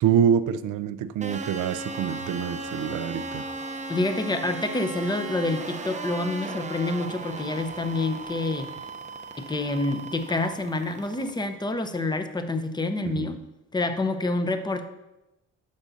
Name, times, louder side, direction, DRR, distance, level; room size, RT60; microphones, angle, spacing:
voice 1, 0.0-3.5 13.0-13.4, right 8 dB, 75° right, 14 dB, 0.6 m, -26 dB
sound 1, 1.2-11.3, right 3 dB, 25° right, 0.7 m, -37 dB
sound 2, 1.7-10.7, left 5 dB, 85° left, 2.4 m, -49 dB
voice 2, 3.9-8.7 9.4-13.4 13.7-14.9, left 2 dB, 15° left, 8 dB, 0.8 m, -27 dB
Wind instrument woodwind instrument, 5.9-10.6, right 6 dB, 50° right, 0.8 m, -42 dB
11.5 x 7.0 x 2.7 m, 0.96 s
cardioid pair, 90°, 30 cm